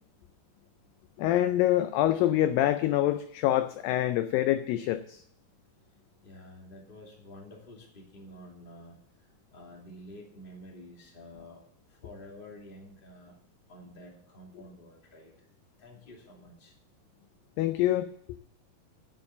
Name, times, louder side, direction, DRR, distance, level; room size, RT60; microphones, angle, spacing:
voice 1, 1.2-5.2 17.6-18.1, left 13 dB, 80° left, 11 dB, 2.1 m, -26 dB
voice 2, 6.2-11.6 11.9-13.4 13.7-15.5 15.8-16.7, left 1 dB, 20° left, -1 dB, 1.9 m, -50 dB
11.0 x 7.1 x 7.0 m, 0.67 s
omnidirectional pair, 4.5 m